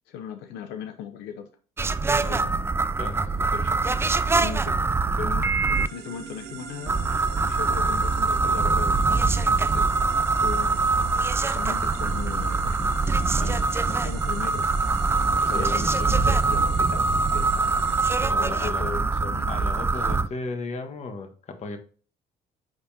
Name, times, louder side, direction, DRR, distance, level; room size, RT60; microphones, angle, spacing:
voice 1, 0.1-1.5 2.2-2.6 3.1-4.1 4.4-5.5 5.9-10.0 10.4-10.8 11.4-13.0 13.4-17.8 18.2-19.5 19.9-20.1, left 8 dB, 85° left, 7 dB, 0.8 m, -38 dB
sound 1, 1.8-5.9 6.9-20.3, right 3 dB, 15° right, 0.3 m, -23 dB
voice 2, 3.0-3.5 13.3-13.5 15.4-15.8 18.3-18.9 19.5-21.8, left 3 dB, 40° left, 6 dB, 1.4 m, -35 dB
sound 2, 5.7-18.2, right 6 dB, 75° right, 1.1 m, -41 dB
9.5 x 3.6 x 2.8 m, 0.39 s
cardioid pair, 110°, 17 cm